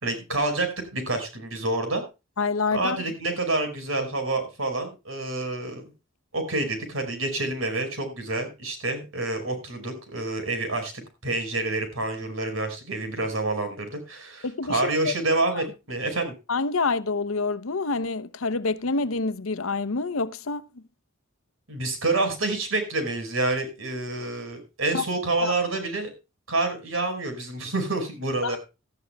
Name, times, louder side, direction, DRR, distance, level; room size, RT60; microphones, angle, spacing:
voice 1, 0.0-2.0 2.7-5.9 6.3-10.9 11.2-16.3 21.7-26.1 26.5-28.6, right 2 dB, 80° right, 5.3 m, -28 dB
voice 2, 2.4-3.0 14.4-15.1 16.5-20.7 24.9-25.0 25.4-25.5 28.4-28.6, left 4 dB, 90° left, 0.8 m, -27 dB
18.0 x 13.0 x 2.3 m
head